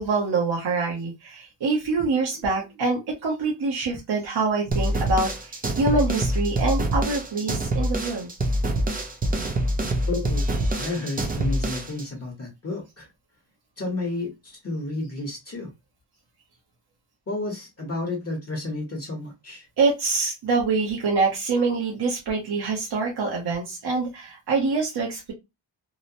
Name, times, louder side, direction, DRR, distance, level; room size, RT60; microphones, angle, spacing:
voice 1, 0.0-8.3 19.8-25.3, right 4 dB, 60° right, 0.8 m, -25 dB
sound 1, 4.7-12.0, right 1 dB, 20° right, 0.4 m, -25 dB
voice 2, 10.1-13.1 13.8-15.7 17.3-19.7, left 2 dB, 35° left, 0.8 m, -31 dB
2.9 x 2.1 x 2.5 m
wide cardioid pair, 145°, 45 cm